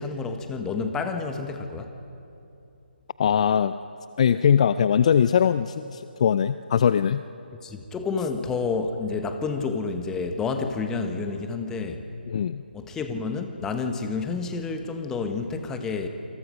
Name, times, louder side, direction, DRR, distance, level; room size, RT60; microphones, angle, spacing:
voice 1, 0.0-2.0 7.6-12.1 12.7-16.1, left 4 dB, 10° left, 6 dB, 1.3 m, -29 dB
voice 2, 3.2-3.7 4.2-7.2 12.3-12.6, left 8 dB, 35° left, 13 dB, 0.5 m, -21 dB
27.5 x 26.0 x 5.2 m, 2.8 s
figure-of-eight pair, 150°, 6 cm